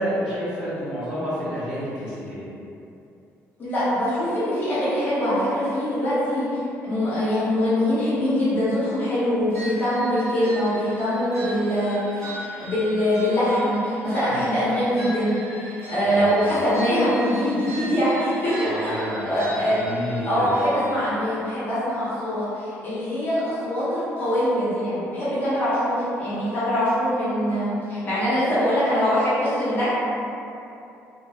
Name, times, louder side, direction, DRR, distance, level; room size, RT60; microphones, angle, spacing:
voice 1, 0.0-2.5 14.3-14.4 16.0-16.5 18.6-20.6, equal, 15° right, -14 dB, 1.2 m, -30 dB
voice 2, 3.6-12.3 12.6-15.4 15.6-19.7 20.2-29.9, equal, 35° left, -11 dB, 0.8 m, -23 dB
sound 1, 9.5-20.9, right 1 dB, 60° right, 0.6 m, -39 dB
2.7 x 2.2 x 2.3 m, 2.7 s
cardioid pair, 145°, 5 cm